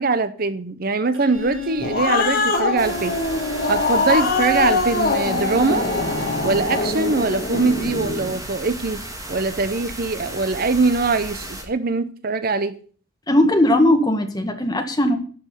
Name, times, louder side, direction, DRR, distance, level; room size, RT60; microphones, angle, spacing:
voice 1, 0.0-3.2 3.7-5.9 6.4-9.0 9.3-12.7, right 3 dB, 50° right, 0.8 m, -22 dB
Bowed string instrument, 1.1-6.6, left 1 dB, 75° right, 3.6 m, -36 dB
Growling, 1.5-8.3, left 3 dB, 55° left, 2.5 m, -23 dB
sound 1, 2.8-11.6, right 1 dB, 20° right, 2.8 m, -34 dB
voice 2, 13.3-15.2, left 1 dB, 20° left, 1.9 m, -18 dB
11.5 x 6.1 x 8.4 m
head